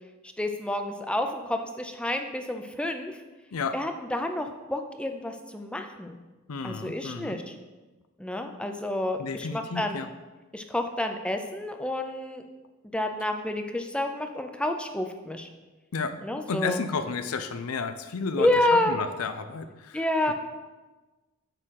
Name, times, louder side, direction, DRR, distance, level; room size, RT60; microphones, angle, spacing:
voice 1, 0.4-3.2 3.7-6.2 6.6-7.6 8.2-10.0 10.5-12.4 12.9-15.5 16.2-16.8 18.4-19.0 19.9-20.3, left 1 dB, 5° left, 5 dB, 0.5 m, -29 dB
voice 2, 6.5-7.4 9.2-10.1 15.9-16.1 16.5-18.5 18.9-20.3, left 5 dB, 85° left, 10 dB, 0.5 m, -32 dB
6.7 x 3.8 x 6.3 m, 1.2 s
head